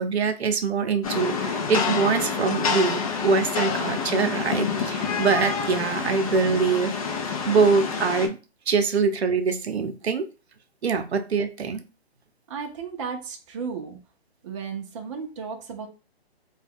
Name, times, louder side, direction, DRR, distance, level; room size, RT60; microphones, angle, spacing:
voice 1, 0.0-6.9 7.5-8.4 8.7-10.3 10.8-11.8, right 5 dB, 85° right, 0.7 m, -24 dB
Rain, 1.0-8.3, left 5 dB, 35° left, 0.5 m, -28 dB
voice 2, 12.5-14.0 14.4-15.9, right 6 dB, 30° right, 0.5 m, -34 dB
2.8 x 2.3 x 3.5 m
hypercardioid pair, 150°, 32 cm